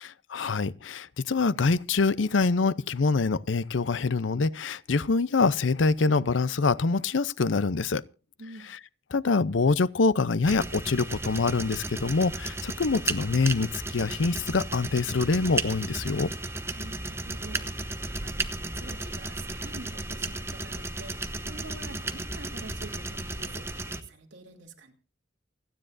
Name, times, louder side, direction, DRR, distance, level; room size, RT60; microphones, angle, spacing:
voice 1, 0.0-8.0 9.1-16.3, left 4 dB, 90° left, 0.6 m, -25 dB
voice 2, 8.4-8.7 16.8-24.9, right 2 dB, 75° right, 2.9 m, -47 dB
sound 1, 10.4-24.0, right 2 dB, 15° right, 0.9 m, -34 dB
28.5 x 10.0 x 2.6 m
head